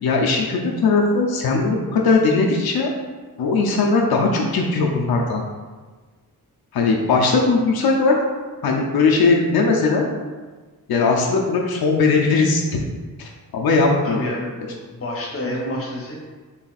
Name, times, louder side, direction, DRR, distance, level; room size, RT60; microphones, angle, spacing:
voice 1, 0.0-2.9 3.4-5.4 6.7-8.1 8.6-10.0 10.9-12.8 13.2-14.2, left 4 dB, 90° left, 0 dB, 0.5 m, -19 dB
voice 2, 14.0-16.1, left 1 dB, 40° left, -3 dB, 0.9 m, -29 dB
4.1 x 3.9 x 2.3 m, 1.4 s
wide cardioid pair, 160°, 36 cm